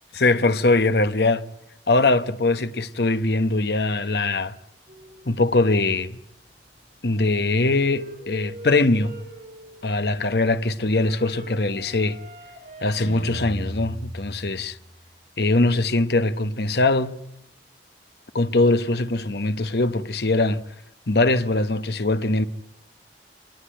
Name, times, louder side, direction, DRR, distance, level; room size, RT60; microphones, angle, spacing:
voice 1, 0.2-1.4 1.9-4.5 5.3-6.2 7.0-9.1 9.8-12.2 12.8-14.8 15.4-17.1 18.3-20.6 21.1-22.4, left 2 dB, 60° left, 1.1 m, -21 dB
sound 1, 4.9-13.6, right 2 dB, 45° right, 5.6 m, -44 dB
Guitar, 13.0-15.0, equal, 85° left, 6.0 m, -36 dB
27.5 x 20.0 x 9.0 m
head